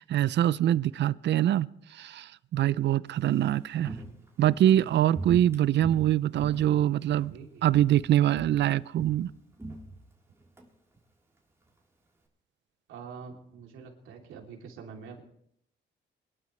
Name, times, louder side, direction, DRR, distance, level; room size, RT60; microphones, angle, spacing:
voice 1, 0.0-4.0 4.4-7.3 7.6-9.3, right 12 dB, 60° right, 0.5 m, -24 dB
Walk footsteps, 3.1-7.4 7.7-8.1 8.3-10.7 10.9-11.0, right 2 dB, 15° right, 3.7 m, -42 dB
voice 2, 7.1-7.7 12.9-15.2, right 6 dB, 85° right, 3.1 m, -45 dB
23.5 x 12.0 x 3.2 m
cardioid pair, 90°, 20 cm